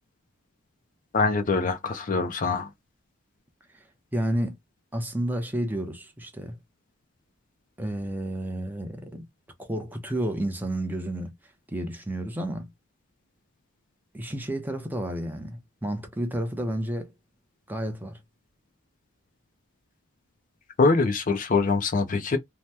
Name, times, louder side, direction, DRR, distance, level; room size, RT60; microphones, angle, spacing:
voice 1, 1.1-2.7 20.8-22.4, left 4 dB, 35° left, 0.4 m, -23 dB
voice 2, 4.1-4.6 4.9-6.6 7.8-9.3 9.6-11.3 11.7-12.7 14.1-17.1 17.7-18.2, right 1 dB, 10° right, 0.6 m, -31 dB
2.8 x 2.1 x 3.2 m
head